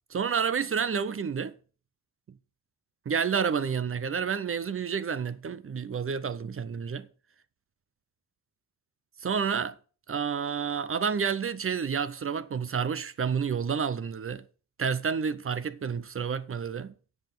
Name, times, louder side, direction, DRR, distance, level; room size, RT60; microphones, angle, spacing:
voice 1, 0.1-1.5 3.1-7.1 9.2-9.8 10.1-14.4 14.8-16.9, right 6 dB, 35° right, 0.6 m, -29 dB
8.9 x 5.6 x 7.5 m
wide cardioid pair, 140°, 40 cm